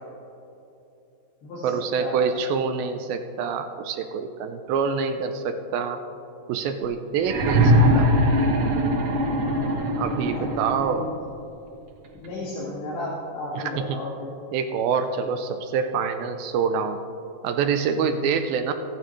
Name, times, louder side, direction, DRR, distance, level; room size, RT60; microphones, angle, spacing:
voice 1, 1.6-6.0 6.5-8.1 10.0-11.1 13.6-13.7 14.5-17.0 17.4-18.7, right 6 dB, 80° right, 7 dB, 2.2 m, -26 dB
Angry hungry growl, 7.2-11.0 12.2-12.3, equal, 65° right, 1.5 m, -21 dB
voice 2, 10.3-10.9 12.2-14.3, left 2 dB, 75° left, -8 dB, 4.3 m, -33 dB
28.5 x 10.0 x 3.2 m, 2.9 s
omnidirectional pair, 4.7 m